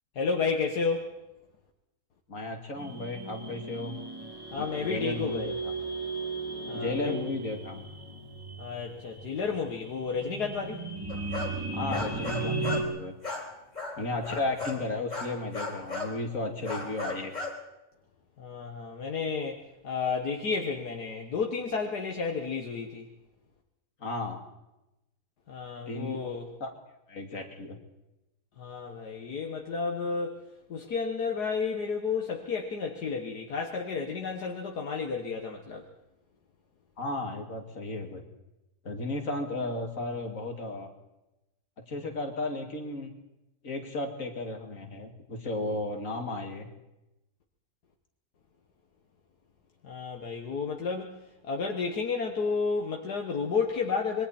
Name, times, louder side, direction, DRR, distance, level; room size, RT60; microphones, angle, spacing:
voice 1, 0.2-1.2 4.5-5.5 6.7-7.1 8.6-10.8 14.3-14.4 18.4-23.1 25.5-26.5 28.6-30.4 30.7-35.8 49.8-54.3, left 5 dB, 75° left, 1 dB, 2.0 m, -32 dB
voice 2, 2.3-3.9 4.6-5.5 6.7-7.8 11.7-13.1 14.0-17.3 24.0-24.4 25.9-26.2 26.6-26.7 27.1-27.8 37.0-38.2 38.8-40.9 41.9-43.1 43.6-46.7, left 2 dB, 55° left, 3 dB, 2.9 m, -34 dB
sound 1, 2.8-12.8, right 3 dB, 15° right, 2.6 m, -36 dB
sound 2, 11.1-12.9 13.2-14.8 15.1-16.2 16.6-17.5, left 3 dB, 25° left, 4.5 m, -36 dB
26.0 x 22.5 x 4.4 m, 0.93 s
omnidirectional pair, 1.7 m